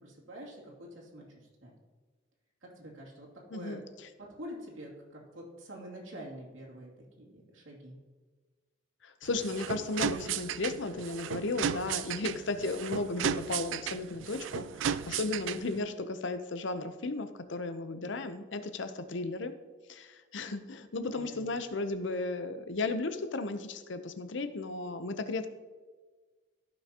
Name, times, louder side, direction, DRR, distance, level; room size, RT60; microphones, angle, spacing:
voice 1, 0.0-1.7 2.6-3.8 4.2-8.0 21.1-21.4, equal, 90° right, -3 dB, 2.6 m, -46 dB
voice 2, 3.5-3.8 9.0-19.5 19.9-25.5, left 3 dB, 65° left, 10 dB, 0.7 m, -35 dB
sound 1, 9.2-15.8, right 8 dB, 70° right, 0.3 m, -35 dB
15.0 x 6.0 x 2.8 m, 1.4 s
head